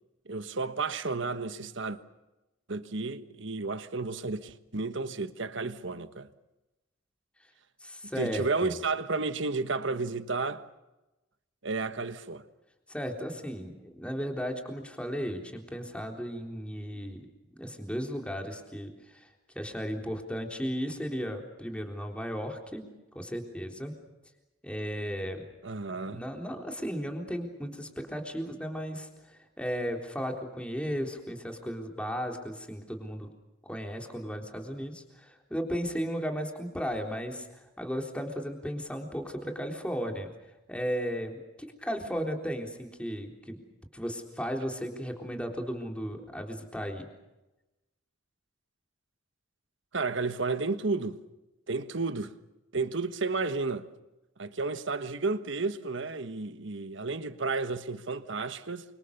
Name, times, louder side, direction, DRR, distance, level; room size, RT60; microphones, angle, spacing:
voice 1, 0.3-2.0 2.7-6.3 8.2-10.7 11.6-12.4 25.6-26.2 49.9-51.2 51.7-52.3 52.7-53.8 54.4-58.8, right 3 dB, 65° right, 1.4 m, -32 dB
voice 2, 7.8-8.8 12.9-17.2 17.5-19.3 19.6-22.8 23.2-23.9 24.6-25.4 26.0-33.3 33.6-40.3 40.7-43.6 43.9-47.1, equal, 5° left, 3.7 m, -35 dB
29.0 x 25.5 x 6.7 m
head